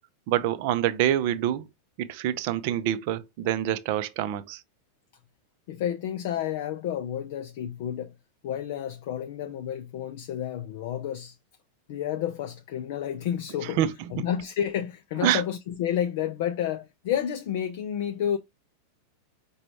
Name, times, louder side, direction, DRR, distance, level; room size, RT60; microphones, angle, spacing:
voice 1, 0.3-1.6 2.0-4.6 13.6-14.3 15.1-15.4, right 11 dB, 45° right, 0.4 m, -26 dB
voice 2, 5.7-8.2 8.4-11.4 11.9-13.8 14.1-18.4, left 10 dB, 50° left, 0.4 m, -30 dB
4.8 x 2.3 x 3.0 m
figure-of-eight pair, 90°, 0 cm